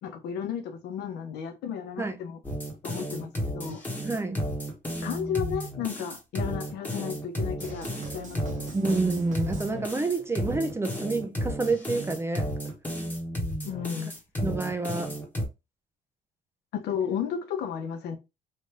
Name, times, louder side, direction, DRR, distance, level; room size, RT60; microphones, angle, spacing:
voice 1, 0.0-2.4 2.8-3.8 5.0-8.8 13.6-14.1 16.7-18.2, left 8 dB, 80° left, 0.8 m, -33 dB
sound 1, 2.4-15.5, equal, 10° left, 1.1 m, -33 dB
voice 2, 4.0-4.5 8.7-12.6 14.4-15.2, right 3 dB, 15° right, 0.5 m, -28 dB
sound 2, 7.6-10.3, right 4 dB, 45° right, 1.0 m, -44 dB
3.3 x 2.6 x 3.2 m
cardioid pair, 110°, 17 cm